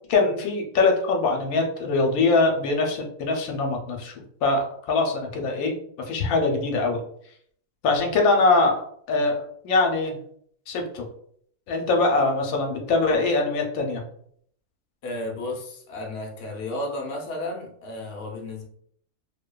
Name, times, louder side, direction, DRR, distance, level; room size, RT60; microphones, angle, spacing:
voice 1, 0.1-4.1 4.4-5.7 6.1-7.0 7.8-10.1 10.7-11.0 11.7-14.0, left 3 dB, 85° left, 2 dB, 1.0 m, -23 dB
voice 2, 15.0-18.6, left 1 dB, 55° left, 0 dB, 0.7 m, -33 dB
2.7 x 2.2 x 2.2 m, 0.64 s
omnidirectional pair, 1.5 m